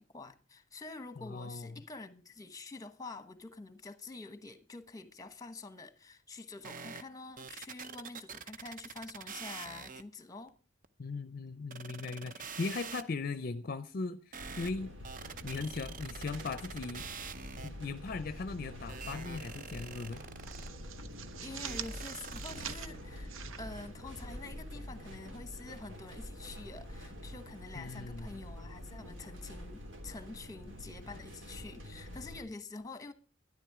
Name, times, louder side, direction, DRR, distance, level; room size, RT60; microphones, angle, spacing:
voice 1, 0.0-10.5 21.4-23.3 23.6-33.1, left 3 dB, 20° left, 1.1 m, -47 dB
voice 2, 1.2-1.7 11.0-14.9 15.4-17.1 17.6-20.2 27.8-28.3, left 4 dB, 50° left, 0.5 m, -38 dB
sound 1, 6.6-7.0 7.4-10.0 10.5-10.6 10.8-10.9 11.7-13.0 14.3-14.7 15.0-17.9 18.9-20.7 21.7-22.8, right 6 dB, 45° right, 0.7 m, -45 dB
sound 2, 14.4-32.4, left 1 dB, 70° right, 3.2 m, -46 dB
sound 3, 18.2-19.1 19.4-19.6 20.0-24.5, right 8 dB, 90° right, 0.8 m, -46 dB
12.5 x 11.0 x 4.8 m
head